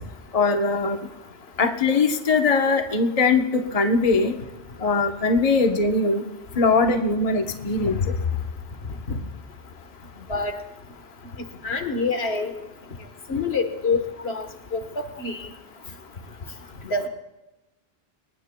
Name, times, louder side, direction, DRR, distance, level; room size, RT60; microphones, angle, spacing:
voice 1, 0.3-1.0 1.6-4.3 4.8-6.3 6.6-8.0, left 3 dB, 40° left, 5 dB, 1.0 m, -21 dB
sound 1, 7.2-10.5, left 6 dB, 60° left, 0.8 m, -32 dB
voice 2, 11.6-12.5 13.3-14.5 14.7-14.8 15.2-15.4 16.9-17.1, left 4 dB, 80° left, 7 dB, 1.5 m, -25 dB
23.5 x 20.0 x 2.2 m, 1.0 s
omnidirectional pair, 1.0 m